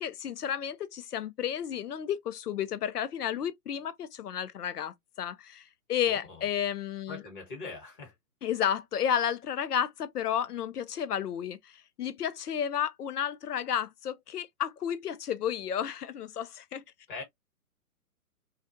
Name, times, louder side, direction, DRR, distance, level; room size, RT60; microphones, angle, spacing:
voice 1, 0.0-7.2 8.4-16.8, left 9 dB, 80° left, 0.6 m, -32 dB
voice 2, 6.1-6.5 7.1-8.1 17.1-17.2, left 3 dB, 35° left, 1.3 m, -42 dB
2.4 x 2.2 x 2.6 m
figure-of-eight pair, 130°, 46 cm